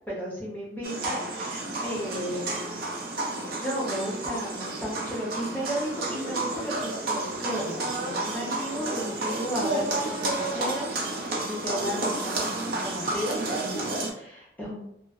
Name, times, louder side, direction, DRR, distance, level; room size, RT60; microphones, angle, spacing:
voice 1, 0.1-2.8 3.6-11.0 11.3-12.5 12.8-14.7, equal, 10° left, -6 dB, 0.7 m, -34 dB
sound 1, 0.8-14.1, right 2 dB, 55° right, 0.5 m, -31 dB
2.4 x 2.3 x 2.2 m, 0.78 s
head